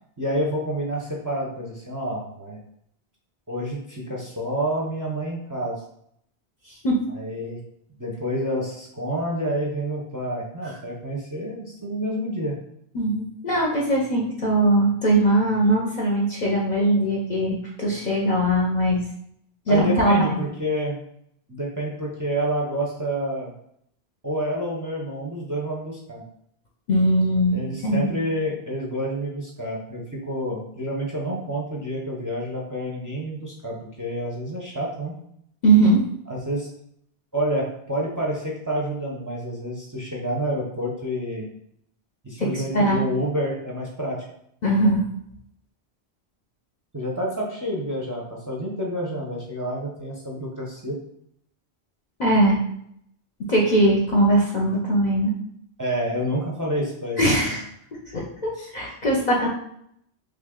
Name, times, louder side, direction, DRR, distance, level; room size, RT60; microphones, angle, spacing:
voice 1, 0.2-2.6 3.5-5.8 7.1-7.6 8.0-12.6 19.7-21.0 21.5-23.5 24.2-26.2 27.5-30.0 30.3-35.1 36.3-36.7 37.3-41.5 42.2-44.2 46.9-51.0 55.8-57.6 58.5-58.7, equal, 25° right, -3 dB, 0.5 m, -28 dB
voice 2, 12.9-19.0 19.7-20.4 26.9-28.1 35.6-36.1 42.4-43.0 44.6-45.0 52.2-52.6 53.4-55.4 57.2-57.6 58.1-59.5, right 1 dB, 50° left, -3 dB, 0.6 m, -20 dB
3.1 x 2.5 x 3.6 m, 0.71 s
omnidirectional pair, 1.1 m